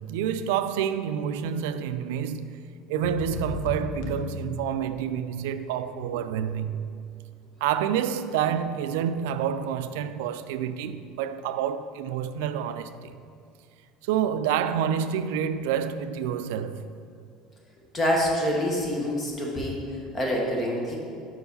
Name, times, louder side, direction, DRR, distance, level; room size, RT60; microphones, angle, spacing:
voice 1, 0.0-2.6 2.9-7.0 7.6-13.1 14.0-16.8, right 8 dB, 85° right, 0.3 m, -28 dB
sound 1, 3.0-5.3, left 2 dB, 85° left, 0.8 m, -35 dB
voice 2, 17.9-21.0, equal, 20° left, 1.1 m, -26 dB
5.7 x 4.7 x 5.3 m
cardioid pair, 160°, 0 cm